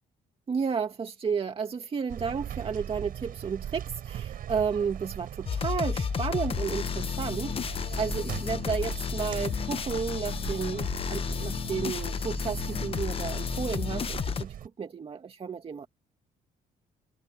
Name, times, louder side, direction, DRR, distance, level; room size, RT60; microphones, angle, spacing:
voice 1, 0.5-15.9, right 6 dB, 35° right, 2.2 m, -32 dB
sound 1, 2.1-14.7, right 10 dB, 60° right, 5.7 m, -40 dB
sound 2, 5.5-14.4, left 7 dB, 35° left, 1.0 m, -32 dB
cardioid pair, 110°, 17 cm